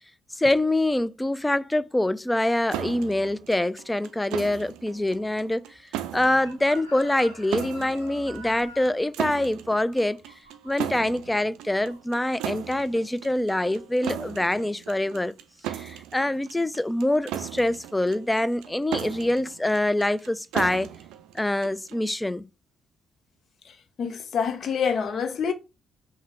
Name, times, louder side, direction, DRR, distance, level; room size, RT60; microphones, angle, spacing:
voice 1, 0.4-5.6 6.1-10.2 10.6-15.3 15.6-20.9 21.3-22.4, left 1 dB, 10° left, 0.4 m, -25 dB
sound 1, 2.7-22.1, right 12 dB, 65° right, 0.4 m, -37 dB
Chicken rooster, 6.4-11.3 11.6-12.0, equal, 90° left, 0.9 m, -45 dB
voice 2, 24.0-25.5, left 6 dB, 50° left, 0.7 m, -26 dB
5.5 x 2.1 x 4.6 m
figure-of-eight pair, 40°, 0 cm